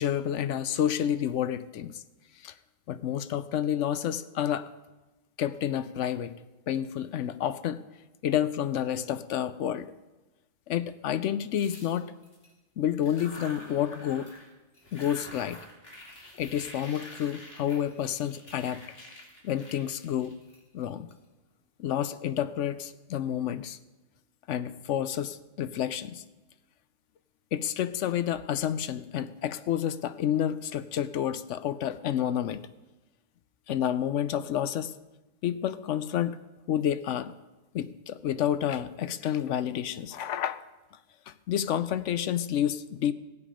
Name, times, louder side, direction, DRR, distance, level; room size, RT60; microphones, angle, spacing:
voice 1, 0.0-2.0 2.4-2.5 2.9-4.7 5.4-6.3 6.7-7.8 8.2-9.9 10.7-12.2 12.8-14.3 14.9-15.6 16.4-18.8 19.4-20.4 20.7-21.1 21.8-23.8 24.5-26.2 27.5-32.7 33.7-34.9 35.4-36.4 36.7-37.3 37.7-40.6 41.3-43.1, left 10 dB, 70° left, 13 dB, 0.8 m, -29 dB
sound 1, 11.5-12.5 12.9-14.5 14.7-21.1, left 1 dB, 45° left, 2.6 m, -48 dB
16.0 x 8.3 x 5.1 m, 1.1 s
omnidirectional pair, 1.4 m